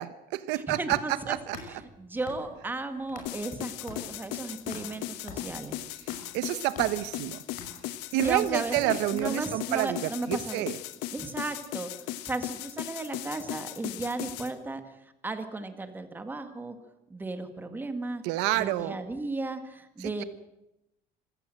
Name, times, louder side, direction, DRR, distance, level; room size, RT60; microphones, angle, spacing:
voice 1, 0.0-1.0 1.3-1.6 6.3-7.4 8.1-10.8 18.2-19.0 20.0-20.2, right 15 dB, 85° right, 14 dB, 1.1 m, -28 dB
voice 2, 0.5-5.8 8.2-10.7 11.1-11.9 12.2-14.8 15.2-16.8 17.1-18.2 18.5-20.2, right 2 dB, 10° right, 8 dB, 1.8 m, -35 dB
sound 1, 1.3-3.6 3.9-9.8, left 4 dB, 50° left, 5.6 m, -47 dB
sound 2, 3.3-14.5, left 13 dB, 85° left, 1.4 m, -37 dB
26.5 x 15.5 x 7.7 m, 0.90 s
cardioid pair, 165°, 17 cm